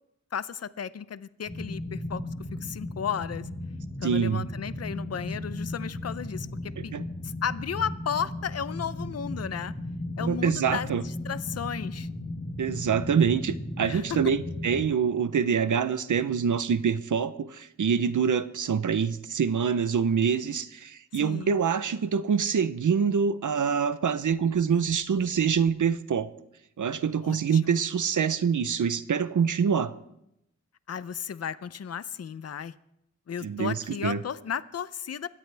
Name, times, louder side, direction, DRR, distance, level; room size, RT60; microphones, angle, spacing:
voice 1, 0.3-2.2 2.6-3.5 4.0-6.9 7.2-9.7 10.2-12.1 13.9-14.0 21.1-21.5 27.2-27.8 30.9-32.7 33.3-35.3, left 7 dB, 55° left, 15 dB, 0.6 m, -34 dB
sound 1, 1.5-14.9, left 1 dB, 25° left, 4.3 m, -36 dB
voice 2, 4.0-4.4 6.8-7.0 10.2-11.0 12.6-26.3 26.8-29.9 33.4-34.2, right 7 dB, 85° right, 13 dB, 0.8 m, -25 dB
23.0 x 17.0 x 3.4 m, 0.81 s
wide cardioid pair, 105°, 30 cm